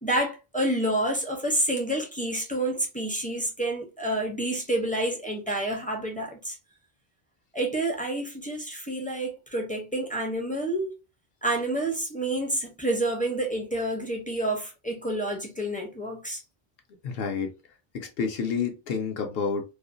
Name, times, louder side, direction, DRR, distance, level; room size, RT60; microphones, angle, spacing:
voice 1, 0.0-6.6 7.5-10.9 11.4-16.4, right 1 dB, 10° left, 0.4 m, -28 dB
voice 2, 17.0-17.5 17.9-19.6, left 5 dB, 70° left, 0.8 m, -29 dB
2.4 x 2.2 x 2.4 m
omnidirectional pair, 1.0 m